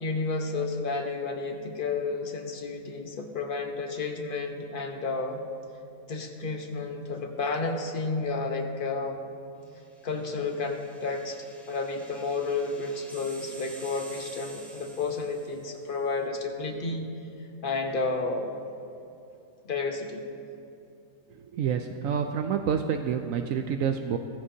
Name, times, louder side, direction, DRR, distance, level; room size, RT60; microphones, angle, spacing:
voice 1, 0.0-5.4 6.1-9.2 10.0-11.4 11.7-17.1 17.6-18.5 19.6-20.2, left 3 dB, 40° left, 3 dB, 1.2 m, -31 dB
sound 1, 10.0-15.9, right 2 dB, ahead, 1.7 m, -49 dB
voice 2, 21.3-24.2, right 7 dB, 75° right, 6 dB, 1.0 m, -28 dB
16.5 x 14.5 x 2.8 m, 2.7 s
omnidirectional pair, 1.5 m